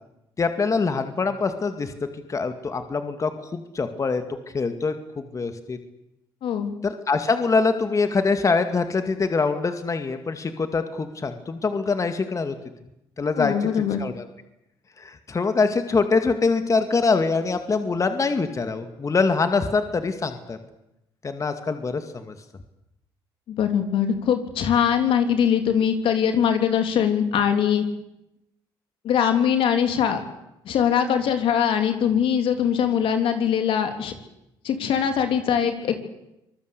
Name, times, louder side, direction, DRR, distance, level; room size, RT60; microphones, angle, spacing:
voice 1, 0.4-1.9 2.3-5.8 6.8-12.5 13.2-13.7 14.0-14.2 15.0-20.6 21.2-22.3, left 4 dB, 35° left, 8 dB, 2.2 m, -24 dB
voice 2, 6.4-6.7 13.4-14.0 23.5-27.8 29.0-30.2 30.6-34.1 34.6-36.0, left 8 dB, 70° left, 6 dB, 3.2 m, -22 dB
25.0 x 20.0 x 8.3 m, 0.86 s
supercardioid pair, 70°, 9 cm